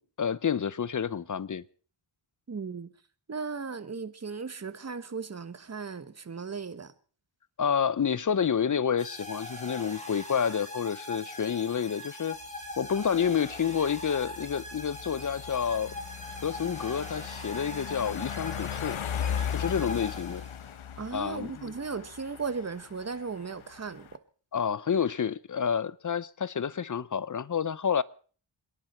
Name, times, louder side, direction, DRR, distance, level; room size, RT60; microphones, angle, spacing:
voice 1, 0.2-1.6 7.6-12.4 12.8-15.9 16.4-19.0 19.5-20.4 21.1-21.7 24.5-28.0, left 7 dB, 40° left, 0.7 m, -29 dB
voice 2, 2.5-2.9 3.3-6.9 21.0-24.1, right 5 dB, 30° right, 1.3 m, -36 dB
sound 1, 9.0-20.8, left 1 dB, 15° left, 4.0 m, -42 dB
sound 2, 12.4-24.1, left 8 dB, 75° left, 1.1 m, -38 dB
28.5 x 10.5 x 4.4 m
cardioid pair, 75°, 49 cm